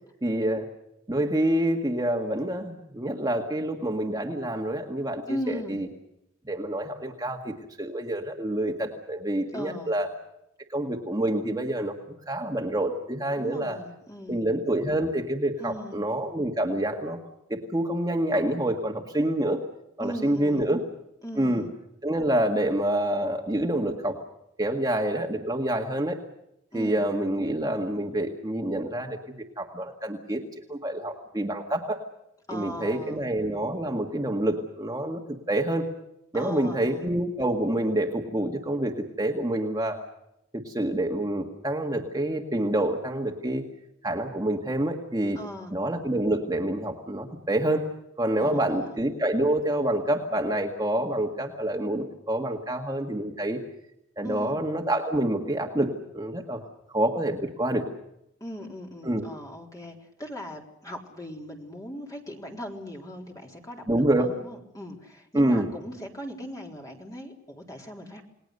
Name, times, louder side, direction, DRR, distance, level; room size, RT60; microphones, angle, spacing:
voice 1, 0.2-0.7 1.1-5.9 6.5-10.1 10.7-12.0 12.3-13.8 14.3-17.2 17.5-19.6 20.0-20.8 21.4-21.6 22.0-24.2 24.6-26.2 26.7-30.4 30.7-32.0 32.5-35.2 35.5-35.8 36.3-40.0 40.5-43.6 44.0-45.4 45.7-47.9 48.2-53.6 54.2-56.6 56.9-57.9 59.0-59.3 63.9-64.4 65.3-65.7, right 1 dB, 20° right, 2 dB, 1.8 m, -27 dB
voice 2, 5.3-5.8 9.5-9.9 13.4-14.5 15.6-16.0 20.0-20.7 21.2-21.7 26.7-27.0 32.5-33.2 36.3-37.1 45.3-45.7 48.4-49.0 54.2-54.5 58.4-68.2, equal, 15° left, 1 dB, 3.8 m, -38 dB
29.0 x 19.5 x 6.7 m, 0.82 s
head